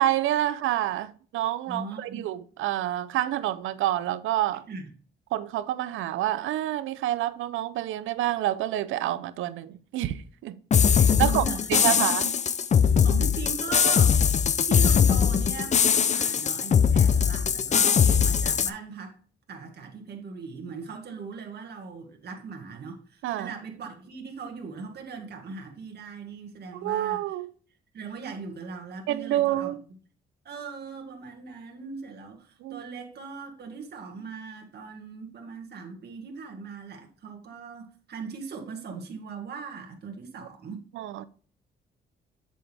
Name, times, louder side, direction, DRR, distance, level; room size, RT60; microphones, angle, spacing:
voice 1, 0.0-4.6 5.3-10.6 10.9-11.4 11.7-12.3 23.2-23.5 26.8-27.5 29.1-29.8 32.6-32.8 40.7-41.3, right 13 dB, 85° right, 0.6 m, -28 dB
voice 2, 1.7-2.3 4.7-4.9 11.0-12.1 13.0-14.2 14.6-19.2 19.5-27.2 27.9-29.7 30.4-40.8, right 5 dB, 55° right, 2.0 m, -39 dB
sound 1, 10.7-18.7, left 7 dB, 35° left, 0.5 m, -21 dB
7.9 x 6.3 x 3.4 m
cardioid pair, 90°, 20 cm